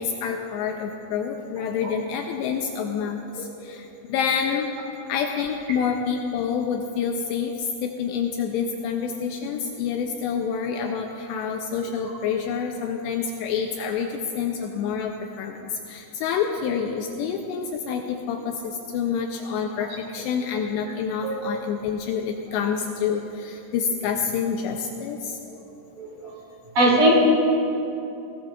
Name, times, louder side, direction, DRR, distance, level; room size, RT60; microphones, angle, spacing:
voice 1, 0.0-4.7 5.1-25.4, left 6 dB, 85° left, 3 dB, 2.6 m, -28 dB
voice 2, 26.8-27.1, right 1 dB, 45° right, -5 dB, 3.8 m, -18 dB
20.0 x 17.0 x 2.5 m, 2.8 s
omnidirectional pair, 5.4 m